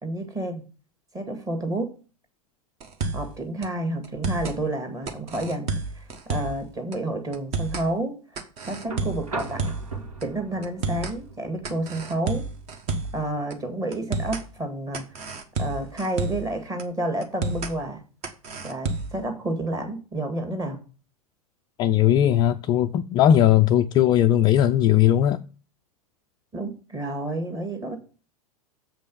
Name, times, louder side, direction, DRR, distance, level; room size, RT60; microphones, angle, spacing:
voice 1, 0.0-0.6 1.1-1.9 3.1-9.8 10.2-12.4 13.1-18.0 18.6-20.8 26.5-28.0, right 1 dB, 15° right, 1.8 m, -30 dB
sound 1, 2.8-3.3 3.6-3.7 4.0-4.6 5.1-6.6 6.9-7.0 7.3-7.9 8.4-9.9 10.2-10.3 10.6-11.2 11.6-13.2 13.5-13.6 13.9-14.5 14.9-16.5 16.8-16.9 17.2-17.7 18.2-19.2, right 4 dB, 35° right, 1.3 m, -30 dB
sound 2, 8.8-16.9 18.3-18.4, right 3 dB, 70° right, 1.7 m, -42 dB
voice 2, 21.8-25.4, left 11 dB, 25° left, 0.4 m, -18 dB
7.2 x 5.3 x 7.1 m
figure-of-eight pair, 95°, 19 cm